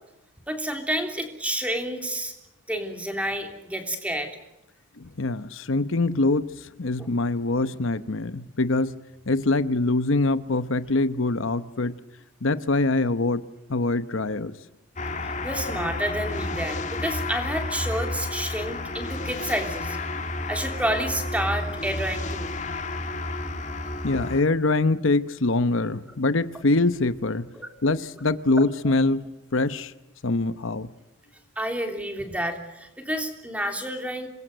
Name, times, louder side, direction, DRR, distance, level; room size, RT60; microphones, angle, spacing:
voice 1, 0.5-2.3 2.7-4.3 7.0-7.1 15.2-20.0 20.5-22.5 27.6-27.7 31.5-34.3, right 1 dB, 5° right, 3.3 m, -29 dB
voice 2, 5.0-9.0 9.3-12.0 12.4-13.4 13.7-14.5 24.0-27.5 27.8-29.9 30.2-30.9, left 2 dB, 75° left, 0.9 m, -24 dB
sound 1, 15.0-24.4, left 2 dB, 35° left, 2.4 m, -31 dB
27.0 x 22.0 x 8.0 m
head